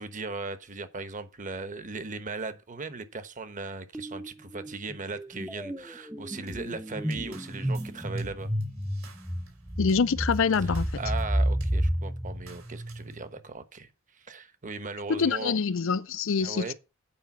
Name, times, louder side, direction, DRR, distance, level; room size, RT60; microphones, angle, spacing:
voice 1, 0.0-8.5 10.6-15.6 16.4-16.7, right 3 dB, 40° right, 1.1 m, -38 dB
sound 1, 3.9-4.3 4.5-13.3, equal, 5° right, 0.6 m, -31 dB
sound 2, 6.5-11.3 11.6-11.8 12.5-13.1, right 2 dB, 75° right, 3.5 m, -48 dB
voice 2, 9.8-10.9 15.1-16.7, left 5 dB, 65° left, 0.5 m, -25 dB
8.8 x 5.0 x 7.2 m
head